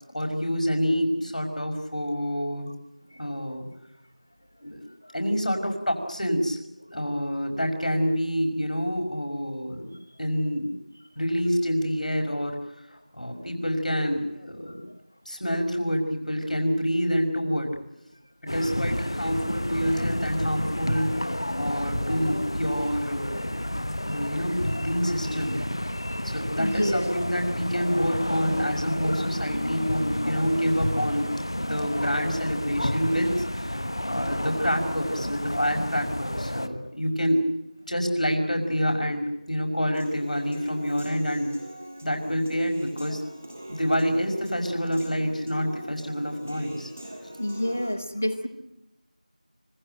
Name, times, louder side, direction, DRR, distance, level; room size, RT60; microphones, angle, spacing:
voice 1, 0.1-2.7 3.2-3.7 4.6-4.8 5.1-6.6 6.9-10.7 11.2-12.6 13.1-14.9 15.3-17.7 18.5-21.1 21.6-23.6 24.1-25.6 26.2-37.5 37.9-41.5 42.0-43.2 43.7-46.9, equal, 70° left, 4 dB, 5.8 m, -27 dB
sound 1, 18.5-36.7, left 1 dB, 35° left, 1.1 m, -30 dB
voice 2, 26.6-27.2 47.4-48.5, left 1 dB, 15° left, 12 dB, 0.8 m, -28 dB
Human voice / Piano, 39.9-47.9, right 1 dB, 15° right, 1.7 m, -42 dB
25.5 x 19.0 x 9.1 m, 0.89 s
figure-of-eight pair, 180°, 4 cm